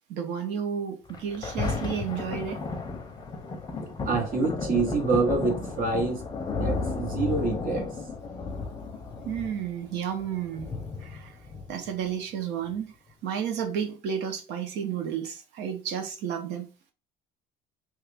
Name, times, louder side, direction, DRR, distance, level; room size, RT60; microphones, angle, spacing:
voice 1, 0.1-2.6 9.2-10.7 11.0-11.3 11.7-12.9 13.2-16.7, right 8 dB, 85° right, 0.8 m, -32 dB
Thunder, 1.1-12.1 12.7-12.8, left 3 dB, 25° left, 0.6 m, -34 dB
voice 2, 4.1-6.2 6.6-7.9, right 3 dB, 50° right, 1.1 m, -26 dB
3.1 x 2.3 x 3.4 m
cardioid pair, 135°, 18 cm